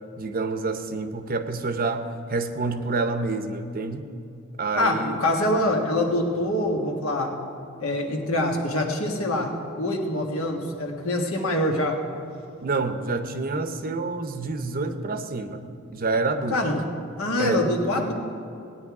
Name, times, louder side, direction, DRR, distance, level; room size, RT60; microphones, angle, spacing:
voice 1, 0.2-4.1 4.6-5.2 12.6-16.7 17.4-17.7, right 3 dB, 40° right, 8 dB, 0.7 m, -28 dB
voice 2, 4.8-7.3 7.8-9.5 9.8-11.9 16.5-16.8 17.2-18.1, left 1 dB, 70° left, 1 dB, 1.6 m, -25 dB
18.0 x 9.9 x 4.8 m, 2.7 s
head